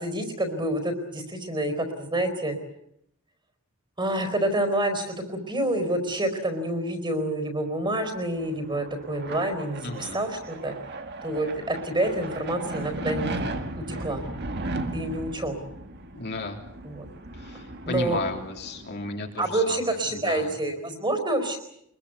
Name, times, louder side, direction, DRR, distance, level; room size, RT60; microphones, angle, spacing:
voice 1, 0.0-2.6 4.0-10.7 11.2-14.2 14.9-15.6 16.8-17.0 17.9-18.2 19.4-21.6, right 1 dB, 20° right, 8 dB, 4.4 m, -28 dB
sound 1, 8.1-19.4, right 2 dB, 50° right, 2.1 m, -36 dB
voice 2, 9.8-10.2 16.1-16.6 17.3-20.5, left 2 dB, 50° left, 2 dB, 3.4 m, -34 dB
24.0 x 22.0 x 8.2 m, 0.75 s
head